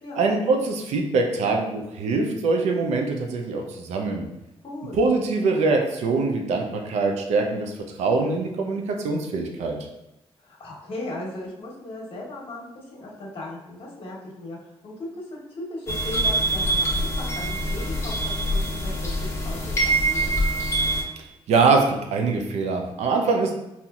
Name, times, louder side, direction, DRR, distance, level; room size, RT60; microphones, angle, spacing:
voice 1, 0.2-4.3 5.0-7.7 8.0-9.8 21.5-23.5, right 3 dB, 85° right, 2 dB, 0.6 m, -23 dB
voice 2, 4.6-5.0 10.4-14.6 14.8-20.4, left 1 dB, 55° left, -3 dB, 1.1 m, -37 dB
sound 1, 15.9-21.0, right 1 dB, 25° left, 1.2 m, -24 dB
4.1 x 2.7 x 2.4 m, 0.90 s
cardioid pair, 75°, 11 cm